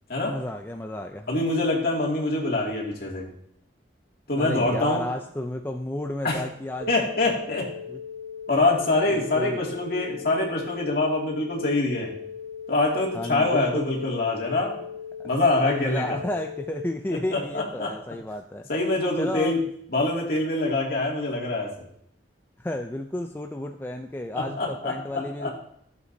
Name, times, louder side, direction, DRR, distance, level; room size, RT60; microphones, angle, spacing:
voice 1, 0.3-1.3 4.3-6.9 7.9-8.0 9.1-9.6 13.1-13.9 15.2-15.3 15.6-18.7 19.2-19.7 22.6-25.5, left 1 dB, 10° left, 4 dB, 0.4 m, -32 dB
voice 2, 1.3-3.2 4.3-5.0 6.2-6.4 6.9-7.7 8.5-12.1 12.7-14.8 15.2-16.2 17.1-17.9 18.7-19.6 19.9-21.7 24.3-25.5, left 2 dB, 55° left, -2 dB, 2.4 m, -25 dB
sound 1, 6.8-16.8, left 7 dB, 50° right, 2.9 m, -38 dB
14.0 x 8.1 x 2.7 m, 0.70 s
head